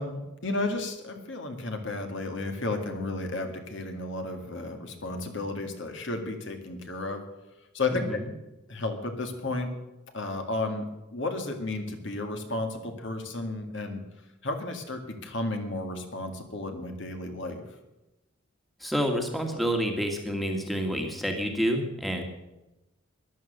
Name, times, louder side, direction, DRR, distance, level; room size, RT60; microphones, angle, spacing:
voice 1, 0.0-7.2 7.7-8.0 8.7-9.7 10.1-14.0 14.4-17.7, left 2 dB, 55° left, 5 dB, 1.9 m, -33 dB
voice 2, 7.9-8.3 18.8-22.2, equal, ahead, 3 dB, 1.7 m, -28 dB
14.0 x 11.5 x 6.6 m, 0.98 s
head